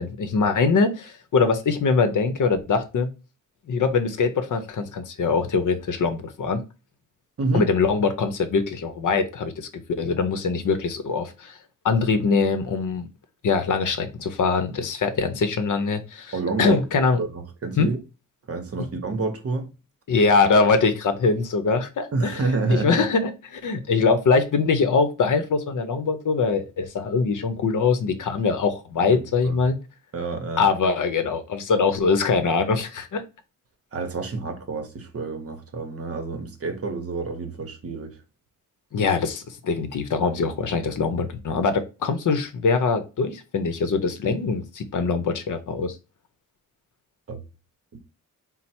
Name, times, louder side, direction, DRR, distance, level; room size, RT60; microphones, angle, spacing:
voice 1, 0.0-3.1 3.7-6.6 7.5-11.6 11.8-13.1 13.4-17.2 17.8-17.9 20.1-29.8 30.6-33.2 38.9-45.9, left 4 dB, 65° left, 0.7 m, -23 dB
voice 2, 7.4-7.7 16.3-16.8 17.2-18.0 18.5-19.7 22.1-23.1 29.0-29.5 30.1-30.7 33.9-38.1 47.3-47.4 47.9-48.0, right 3 dB, 45° right, 0.8 m, -28 dB
4.3 x 2.0 x 4.2 m
wide cardioid pair, 170°, 33 cm